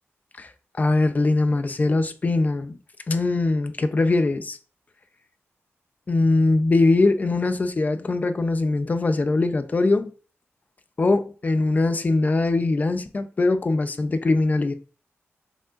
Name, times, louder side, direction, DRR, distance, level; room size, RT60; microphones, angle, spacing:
voice 1, 0.8-2.8 3.1-4.6 6.1-10.1 11.0-14.7, left 2 dB, 35° left, 0.6 m, -21 dB
7.5 x 5.1 x 2.6 m
wide cardioid pair, 115°, 5 cm